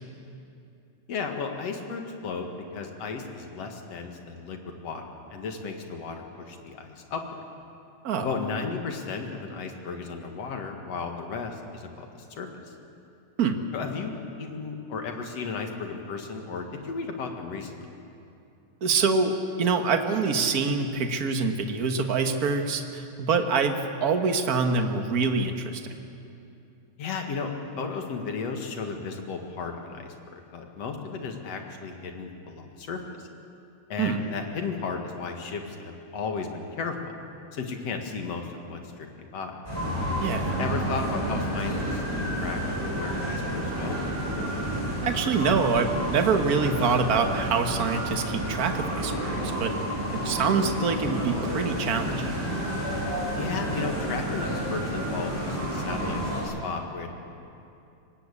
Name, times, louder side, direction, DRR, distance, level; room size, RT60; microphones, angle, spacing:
voice 1, 1.1-5.0 5.3-7.4 8.2-12.5 13.7-17.9 27.0-33.0 33.9-37.2 37.5-39.6 40.6-42.0 42.4-44.0 53.4-57.1, left 5 dB, 60° left, 4 dB, 2.8 m, -34 dB
voice 2, 18.8-25.8 34.0-34.2 40.2-40.6 45.0-49.7 50.1-52.4, right 5 dB, 45° right, 6 dB, 1.3 m, -25 dB
sound 1, 39.6-56.4, equal, 5° left, 7.9 m, -30 dB
24.0 x 19.5 x 8.4 m, 2.7 s
omnidirectional pair, 3.4 m